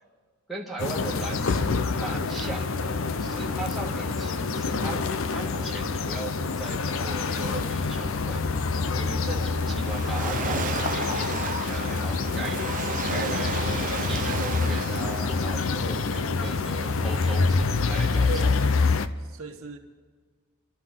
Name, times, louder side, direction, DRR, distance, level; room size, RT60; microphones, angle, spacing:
voice 1, 0.5-1.7 2.0-8.5 8.9-12.8 13.1-13.7 14.1-18.5, right 2 dB, ahead, -4 dB, 1.7 m, -38 dB
sound 1, 0.8-19.1, left 4 dB, 65° left, 0.6 m, -26 dB
Waves surf, 9.4-16.2, right 6 dB, 35° right, 0.6 m, -35 dB
voice 2, 14.6-15.3 18.3-18.5 19.2-19.8, right 3 dB, 70° right, 3 dB, 1.3 m, -39 dB
26.0 x 12.5 x 3.8 m, 1.5 s
head